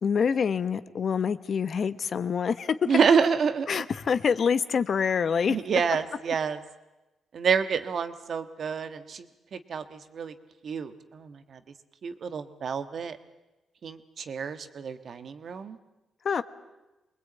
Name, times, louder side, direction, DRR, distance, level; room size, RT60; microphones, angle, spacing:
voice 1, 0.0-2.8 3.7-5.8 16.2-16.4, left 6 dB, 55° left, 13 dB, 1.0 m, -26 dB
voice 2, 2.9-3.7 5.5-6.6 7.3-10.3 10.6-11.6 12.0-13.2 13.8-15.8, right 6 dB, 60° right, 10 dB, 1.4 m, -28 dB
24.0 x 20.5 x 8.7 m, 1.0 s
cardioid pair, 80°, 0 cm